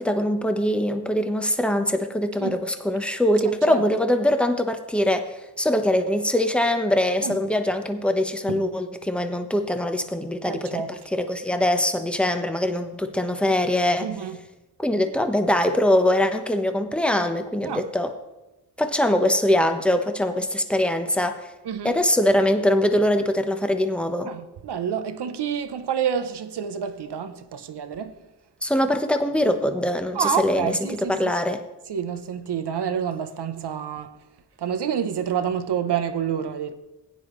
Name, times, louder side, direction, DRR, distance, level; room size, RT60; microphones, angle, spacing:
voice 1, 0.0-14.1 14.8-18.1 18.8-21.5 21.8-24.3 28.6-31.6, left 1 dB, 5° left, 1.0 m, -23 dB
voice 2, 10.4-10.9 14.0-14.4 17.7-17.8 21.6-21.9 24.2-28.1 30.1-31.2 31.9-34.1 34.6-36.7, right 8 dB, 85° right, 0.9 m, -28 dB
16.5 x 9.4 x 3.2 m
cardioid pair, 75°, 39 cm